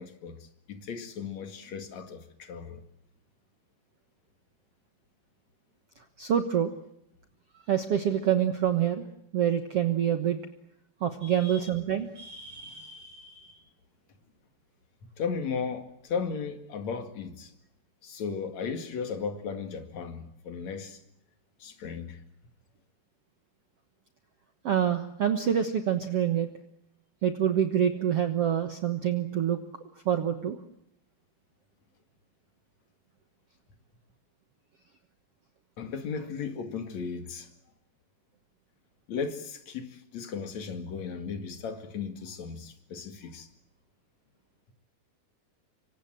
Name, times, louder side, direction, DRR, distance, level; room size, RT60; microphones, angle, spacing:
voice 1, 0.0-2.8 15.2-17.5 18.0-21.0 21.6-22.2 35.8-37.5 39.1-43.5, left 6 dB, 50° left, 3.0 m, -36 dB
voice 2, 6.2-6.7 7.7-9.0 9.3-10.4 11.0-13.5 24.6-26.5 27.2-29.6 30.0-30.6, right 9 dB, 65° right, 1.5 m, -27 dB
25.5 x 25.0 x 7.7 m
omnidirectional pair, 4.6 m